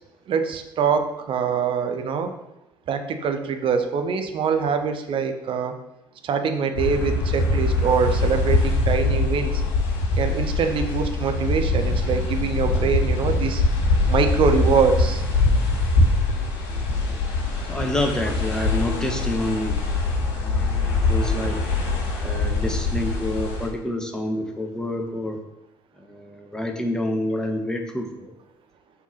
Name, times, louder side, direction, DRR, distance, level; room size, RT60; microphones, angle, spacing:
voice 1, 0.3-2.3 2.9-5.7 6.2-9.6 10.2-13.6 14.1-15.2, right 6 dB, 50° right, 6 dB, 1.1 m, -24 dB
sound 1, 6.7-23.7, left 2 dB, 65° left, 3.0 m, -23 dB
voice 2, 16.7-17.2 17.7-19.8 20.1-21.6 22.2-25.4 26.0-28.3, left 1 dB, 5° left, 3 dB, 1.6 m, -28 dB
6.9 x 4.8 x 5.9 m, 0.87 s
figure-of-eight pair, 55°, 12 cm